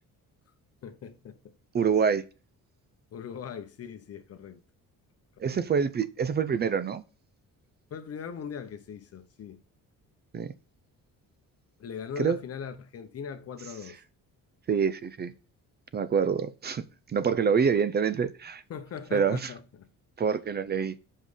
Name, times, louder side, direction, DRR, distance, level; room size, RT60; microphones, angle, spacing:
voice 1, 0.8-1.6 3.1-4.6 5.4-5.7 7.9-9.6 11.8-14.0 18.7-19.9, left 7 dB, 45° left, 0.9 m, -40 dB
voice 2, 1.7-2.2 5.4-7.0 10.3-10.5 12.2-12.4 14.7-15.3 15.9-16.8 17.1-18.6 19.1-19.5 20.2-21.0, right 6 dB, 30° right, 0.5 m, -26 dB
7.5 x 5.5 x 4.9 m
cardioid pair, 160°, 34 cm